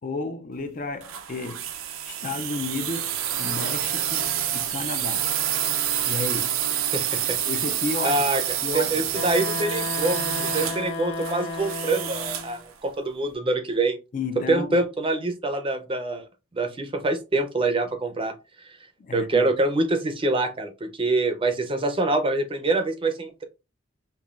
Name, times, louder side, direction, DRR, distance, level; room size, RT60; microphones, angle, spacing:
voice 1, 0.0-1.7 2.1-5.4 6.1-6.7 7.5-8.3 8.6-9.3 14.1-14.8 19.0-19.5, left 4 dB, 40° left, 0.4 m, -32 dB
sound 1, 1.0-12.6, right 10 dB, 90° right, 0.5 m, -28 dB
voice 2, 6.9-7.4 8.0-8.4 8.9-14.0 14.5-16.2 16.5-18.7 19.1-23.4, right 2 dB, 25° right, 0.5 m, -25 dB
Wind instrument woodwind instrument, 9.1-12.6, left 3 dB, 65° left, 1.0 m, -33 dB
5.4 x 2.2 x 2.4 m
head